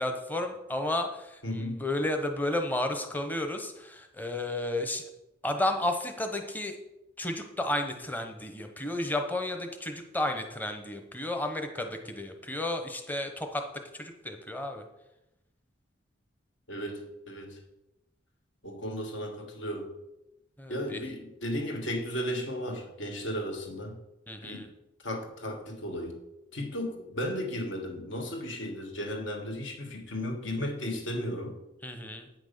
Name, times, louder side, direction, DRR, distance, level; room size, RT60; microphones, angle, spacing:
voice 1, 0.0-5.1 5.4-6.8 7.2-13.7 13.9-14.8 20.6-21.0 24.3-24.7 31.8-32.3, left 1 dB, 10° left, 5 dB, 0.9 m, -32 dB
voice 2, 1.4-1.8 16.7-17.6 18.6-19.9 20.7-24.0 24.4-24.7 25.0-26.2 26.5-31.6, equal, 65° left, 3 dB, 1.7 m, -35 dB
9.3 x 6.0 x 6.8 m, 0.90 s
head